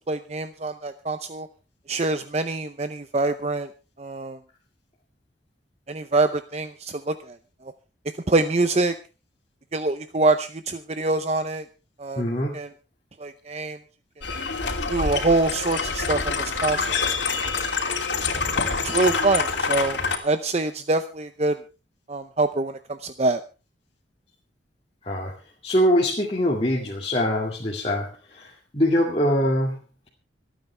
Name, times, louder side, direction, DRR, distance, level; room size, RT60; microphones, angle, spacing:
voice 1, 0.1-1.5 1.9-3.7 4.0-4.4 5.9-7.4 7.6-7.7 8.3-8.9 9.7-11.6 12.0-12.2 12.5-12.7 13.2-13.8 14.9-16.9 18.8-21.6 22.1-23.4, right 3 dB, 35° right, 10 dB, 0.6 m, -25 dB
voice 2, 12.2-12.5 25.1-25.3 25.6-29.8, equal, 30° left, -3 dB, 2.2 m, -23 dB
sound 1, 14.2-20.2, left 4 dB, 80° left, 2.9 m, -26 dB
26.5 x 9.2 x 3.4 m, 0.32 s
head